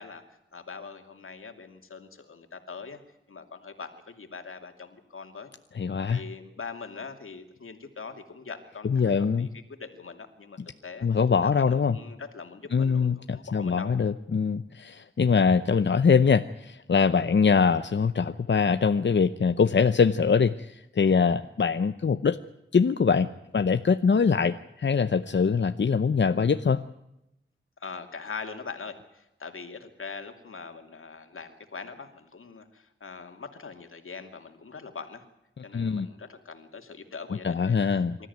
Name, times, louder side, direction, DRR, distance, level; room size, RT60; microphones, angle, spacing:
voice 1, 0.0-3.0 3.3-5.5 6.1-11.1 11.4-13.9 27.8-35.3 35.6-38.3, left 5 dB, 80° left, 5 dB, 2.7 m, -42 dB
voice 2, 5.7-6.2 8.8-9.5 11.0-12.0 12.7-22.4 22.7-26.8 35.7-36.1 37.4-38.2, left 5 dB, 60° left, 9 dB, 0.8 m, -23 dB
26.0 x 13.5 x 9.5 m, 0.87 s
wide cardioid pair, 65°, 21 cm